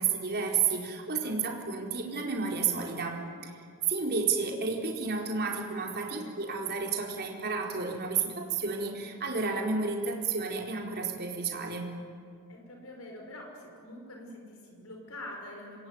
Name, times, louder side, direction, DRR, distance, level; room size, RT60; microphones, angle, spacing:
voice 1, 0.0-3.5 3.9-11.9, right 5 dB, 45° right, 1 dB, 4.1 m, -31 dB
voice 2, 12.5-15.9, left 1 dB, 65° left, 1 dB, 5.9 m, -45 dB
26.5 x 22.0 x 9.5 m, 2.2 s
head